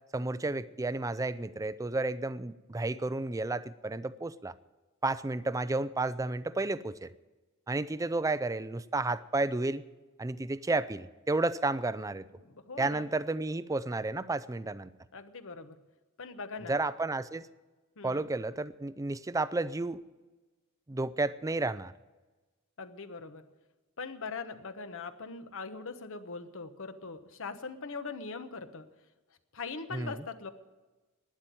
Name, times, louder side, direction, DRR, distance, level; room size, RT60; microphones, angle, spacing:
voice 1, 0.1-4.5 5.0-7.1 7.7-9.8 10.2-12.2 12.8-14.9 16.7-17.5 18.0-20.0 20.9-21.9 29.9-30.2, right 2 dB, 15° right, 15 dB, 0.4 m, -32 dB
voice 2, 12.4-13.1 15.1-15.8 16.2-16.8 18.0-18.3 22.8-23.5 24.0-28.9 29.5-30.5, left 4 dB, 65° left, 9 dB, 1.1 m, -41 dB
12.0 x 10.0 x 9.3 m, 1.2 s
head